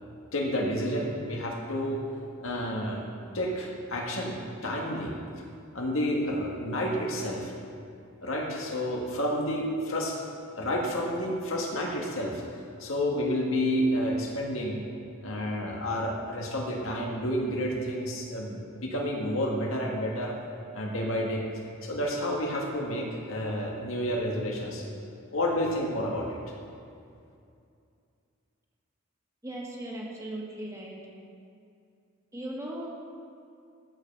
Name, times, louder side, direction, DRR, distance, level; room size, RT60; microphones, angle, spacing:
voice 1, 0.3-2.0 2.4-3.0 3.3-5.1 5.7-7.5 8.2-10.2 10.6-12.4 12.8-14.8 15.2-20.4 20.7-21.4 21.8-24.8 25.3-26.4, equal, 70° left, -1 dB, 1.7 m, -30 dB
voice 2, 29.4-31.0 32.3-32.9, right 1 dB, 15° right, -3 dB, 1.7 m, -37 dB
13.5 x 5.5 x 6.6 m, 2.4 s
head